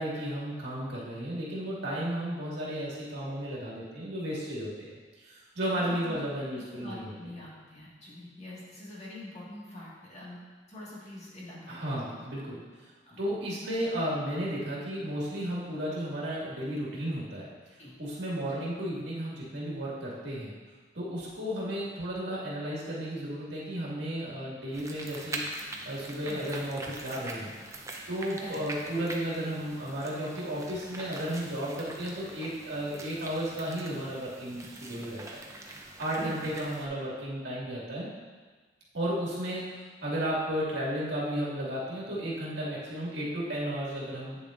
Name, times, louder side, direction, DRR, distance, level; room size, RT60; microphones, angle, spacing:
voice 1, 0.0-4.9 5.2-7.1 11.7-12.6 13.2-17.5 18.0-20.5 20.9-25.4 25.8-27.5 28.1-35.4 36.0-38.1 38.9-39.7 40.0-44.4, equal, 65° right, -6 dB, 2.1 m, -33 dB
voice 2, 5.9-6.2 6.5-10.4 10.7-12.2 13.1-13.2 17.8-18.0 26.3-26.5 28.4-28.9 36.2-36.5, left 1 dB, 40° left, -6 dB, 1.8 m, -44 dB
sound 1, 24.7-36.9, right 2 dB, 15° right, 0.7 m, -43 dB
8.9 x 7.0 x 2.5 m, 1.4 s
head